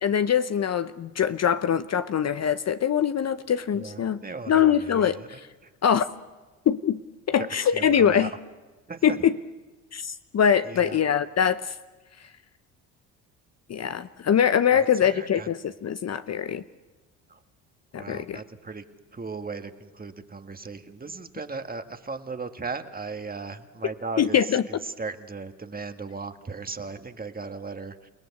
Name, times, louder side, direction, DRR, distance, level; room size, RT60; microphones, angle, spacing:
voice 1, 0.0-4.2 4.5-5.4 5.8-6.0 6.7-7.0 7.3-8.3 9.0-9.3 9.9-11.7 13.7-16.6 17.9-18.4 24.2-24.6, left 8 dB, 40° left, 0.8 m, -23 dB
voice 2, 3.7-5.3 5.6-5.7 7.7-8.3 8.9-9.2 10.7-11.0 14.7-14.9 15.1-15.5 17.3-17.4 18.0-18.8 19.1-24.4 24.7-28.1, right 4 dB, 20° right, 1.8 m, -37 dB
29.0 x 18.5 x 8.4 m
hypercardioid pair, 70°, 42 cm